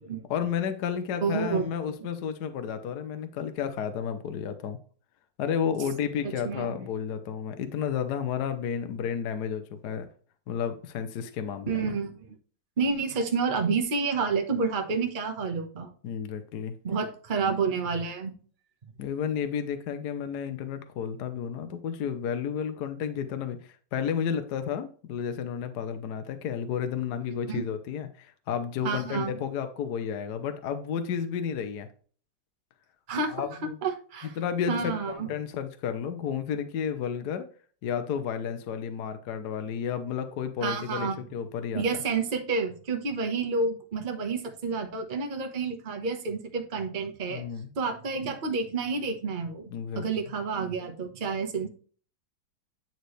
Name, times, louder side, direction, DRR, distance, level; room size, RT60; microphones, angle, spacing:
voice 1, 0.3-4.8 5.4-10.1 10.5-12.0 16.0-16.8 19.0-31.9 33.3-33.8 34.2-37.5 37.8-41.9 47.3-47.7 49.7-50.4, left 7 dB, 65° left, 9 dB, 1.3 m, -32 dB
voice 2, 1.2-1.7 6.2-6.8 11.7-12.4 12.8-15.9 16.8-18.3 27.5-27.6 28.8-29.4 33.1-33.5 33.8-34.4 34.7-35.3 40.6-41.2 41.7-47.4 47.8-51.7, right 4 dB, 30° right, 4 dB, 1.0 m, -29 dB
9.4 x 4.6 x 3.2 m, 0.42 s
omnidirectional pair, 2.1 m